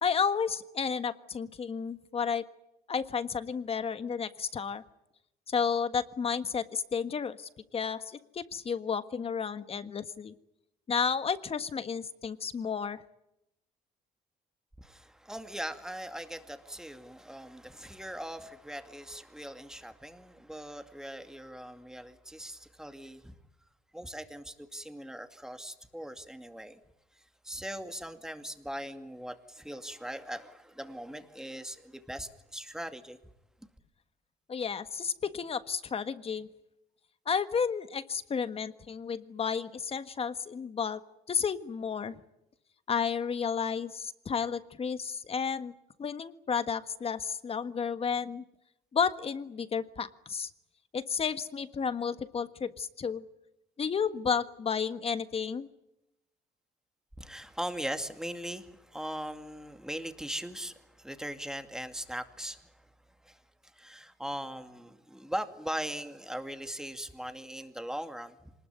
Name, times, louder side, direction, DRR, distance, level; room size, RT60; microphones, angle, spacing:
voice 1, 0.0-2.5 2.9-4.8 5.5-10.3 10.9-13.0 34.5-36.5 37.2-41.0 41.3-42.2 42.9-45.7 46.0-48.4 48.9-50.5 50.9-53.2 53.8-55.7, left 6 dB, 35° left, 1.5 m, -32 dB
voice 2, 14.8-23.4 23.9-26.8 27.1-33.2 33.6-33.7 57.2-62.9 63.2-68.5, equal, 5° right, 2.3 m, -40 dB
25.5 x 20.0 x 9.5 m
cardioid pair, 110°, 17 cm